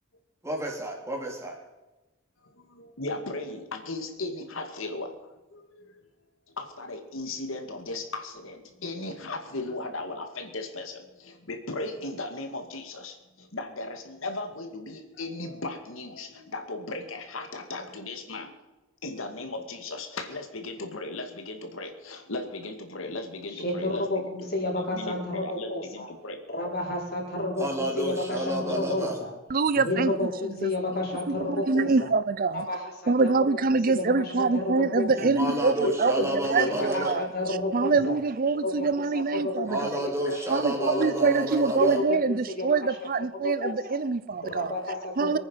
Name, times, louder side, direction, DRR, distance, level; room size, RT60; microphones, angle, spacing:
voice 1, 0.4-1.6 27.6-29.2 35.2-37.1 39.7-42.0, right 1 dB, 15° right, 3.2 m, -30 dB
voice 2, 2.6-6.0 6.5-18.5 19.0-24.3 24.9-25.2 25.4-26.4, left 2 dB, 85° left, 2.3 m, -37 dB
voice 3, 23.5-26.1 26.5-29.3 29.7-32.1 32.5-33.5 33.7-35.3 35.8-38.2 38.6-39.7 40.0-41.3 41.8-42.7 43.2-44.0 44.4-45.4, left 2 dB, 50° left, 5.4 m, -31 dB
voice 4, 29.5-30.1 30.6-30.7 31.3-31.4 31.7-32.7 33.1-37.3 37.7-39.9 40.5-44.7 45.2-45.4, right 4 dB, 45° right, 0.5 m, -25 dB
23.0 x 9.6 x 5.6 m
head